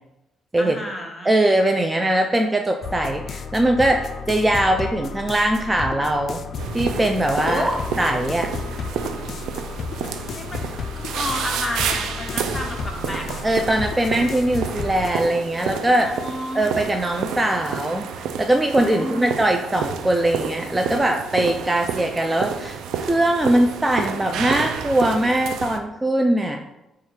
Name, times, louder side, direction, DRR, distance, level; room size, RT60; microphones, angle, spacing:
voice 1, 0.6-1.4 7.4-7.8 10.3-10.6 11.0-13.2 16.0-16.7 18.9-19.3, left 1 dB, 15° left, 1 dB, 1.0 m, -30 dB
voice 2, 1.3-6.4 6.7-7.6 8.0-8.5 13.4-16.1 16.5-26.6, right 1 dB, 15° right, 3 dB, 0.4 m, -21 dB
sound 1, 2.8-15.1, left 5 dB, 55° left, 0.3 m, -33 dB
sound 2, 6.6-25.8, right 7 dB, 85° right, 0.4 m, -30 dB
4.3 x 2.4 x 4.7 m, 0.95 s
cardioid pair, 90°, 0 cm